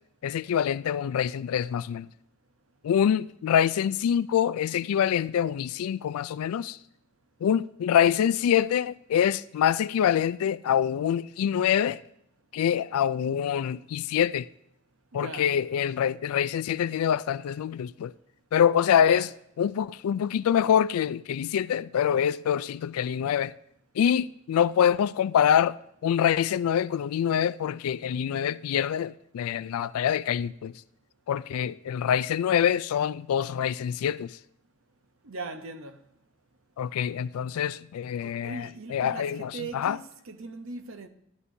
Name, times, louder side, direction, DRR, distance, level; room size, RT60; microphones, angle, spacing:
voice 1, 0.2-2.1 2.8-6.8 7.4-12.0 12.5-14.5 15.1-18.1 18.5-19.3 19.6-23.5 23.9-25.8 26.0-30.7 31.3-34.4 36.8-40.0, left 9 dB, 85° left, 0.3 m, -25 dB
voice 2, 15.1-15.5 19.0-19.3 35.2-36.0 38.2-41.1, right 3 dB, 75° right, 0.8 m, -39 dB
12.5 x 11.0 x 2.7 m
head